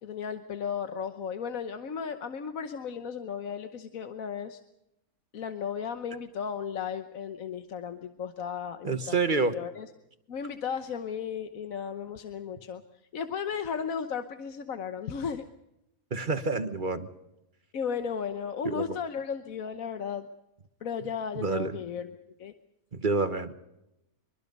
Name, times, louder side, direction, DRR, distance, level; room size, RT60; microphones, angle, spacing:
voice 1, 0.0-4.6 5.3-9.9 10.3-12.8 13.1-15.4 17.7-20.3 20.8-22.5, left 7 dB, 70° left, 9 dB, 1.4 m, -35 dB
voice 2, 8.8-9.5 16.1-17.1 18.6-19.0 21.3-21.8 22.9-23.5, right 3 dB, 35° right, 10 dB, 1.3 m, -28 dB
24.0 x 23.5 x 5.4 m, 0.87 s
omnidirectional pair, 1.5 m